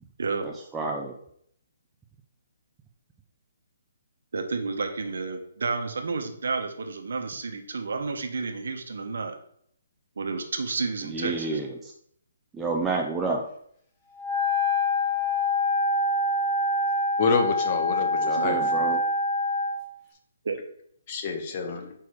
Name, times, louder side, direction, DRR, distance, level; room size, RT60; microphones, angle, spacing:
voice 1, 0.4-1.1 11.1-11.9 12.5-13.4 18.2-19.0, right 3 dB, 10° right, 0 dB, 0.4 m, -30 dB
voice 2, 4.3-9.3 10.2-11.6 20.4-20.6, right 4 dB, 75° right, 6 dB, 1.0 m, -31 dB
Wind instrument woodwind instrument, 14.2-19.8, left 2 dB, 10° left, 1.2 m, -25 dB
voice 3, 17.2-18.8 21.1-21.9, left 4 dB, 30° left, 5 dB, 0.9 m, -27 dB
4.8 x 4.7 x 4.7 m, 0.68 s
hypercardioid pair, 165°, 0 cm